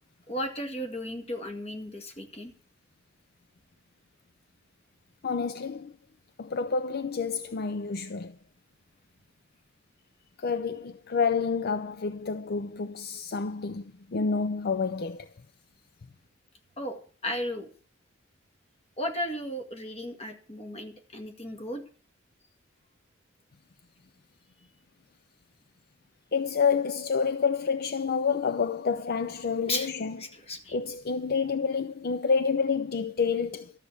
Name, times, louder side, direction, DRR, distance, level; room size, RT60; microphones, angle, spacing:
voice 1, 0.3-2.5 16.8-17.7 19.0-21.8 29.7-29.9 30.2-30.8, left 1 dB, 30° left, 2.0 m, -35 dB
voice 2, 5.2-5.9 6.4-8.4 10.4-15.3 26.3-30.2 30.7-33.7, left 5 dB, 50° left, 0.5 m, -28 dB
13.0 x 7.4 x 8.4 m
head